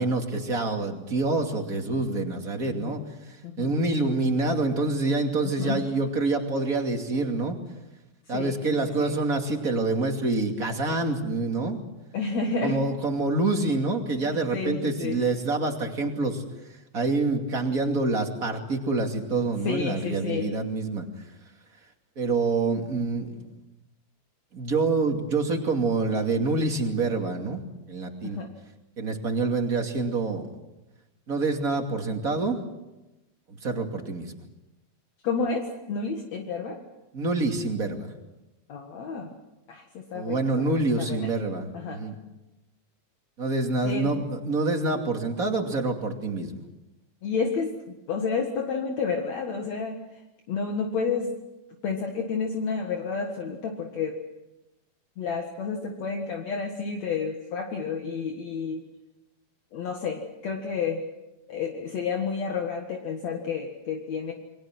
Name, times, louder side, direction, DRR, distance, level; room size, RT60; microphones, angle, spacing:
voice 1, 0.0-3.0 3.6-7.6 8.3-11.8 12.6-16.4 16.9-21.1 22.2-23.5 24.5-27.6 27.9-28.4 29.0-30.5 31.3-32.6 33.5-34.3 37.1-38.1 40.1-42.1 43.4-46.7, right 3 dB, 30° right, 3 dB, 2.7 m, -26 dB
voice 2, 2.7-3.0 3.4-3.7 5.4-5.8 8.3-9.1 12.1-12.8 14.1-15.2 19.6-20.5 28.2-28.5 35.2-36.8 38.7-39.3 39.7-41.3 41.7-42.0 43.8-44.1 47.2-50.2 50.5-51.4 51.8-54.2 55.2-58.8 59.7-61.0 61.5-64.3, left 5 dB, 60° left, 2 dB, 2.9 m, -30 dB
29.0 x 23.0 x 6.1 m, 1.0 s
omnidirectional pair, 3.6 m